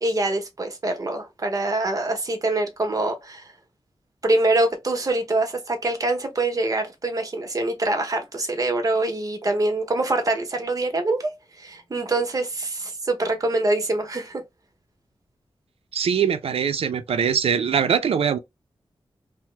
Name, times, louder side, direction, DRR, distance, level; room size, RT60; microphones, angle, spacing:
voice 1, 0.0-3.4 4.2-14.4, right 2 dB, 35° right, 0.8 m, -24 dB
voice 2, 15.9-18.4, right 7 dB, 80° right, 0.4 m, -22 dB
2.9 x 2.1 x 3.2 m
wide cardioid pair, 120°, 10 cm